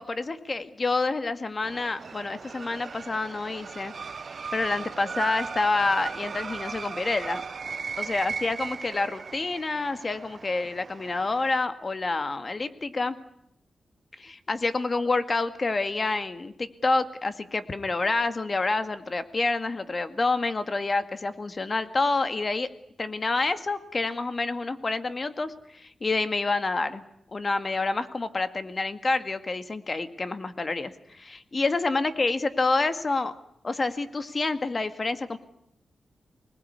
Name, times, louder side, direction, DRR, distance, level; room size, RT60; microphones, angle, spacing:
voice 1, 0.0-3.9 4.5-7.4 8.0-13.2 14.2-22.7 23.0-27.0 27.3-33.3 33.6-35.4, left 3 dB, 40° left, 10 dB, 2.0 m, -28 dB
sound 1, 1.6-11.6, right 5 dB, 55° right, 0.9 m, -37 dB
25.0 x 19.5 x 9.7 m, 0.76 s
cardioid pair, 80°, 0 cm